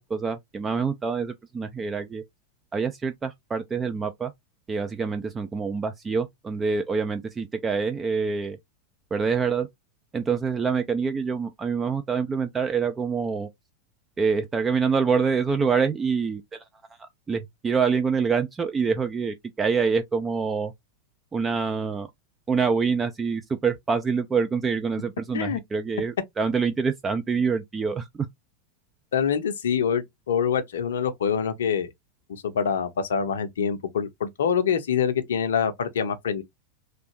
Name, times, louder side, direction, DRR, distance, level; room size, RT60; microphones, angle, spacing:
voice 1, 0.0-2.2 2.7-4.3 4.7-8.6 9.1-9.7 10.1-13.5 14.2-16.6 17.0-20.7 21.3-22.1 22.5-28.3, right 5 dB, 15° right, 0.4 m, -26 dB
voice 2, 29.1-31.9 32.3-36.4, left 7 dB, 60° left, 0.6 m, -25 dB
3.2 x 2.5 x 2.9 m
figure-of-eight pair, 90°, 0 cm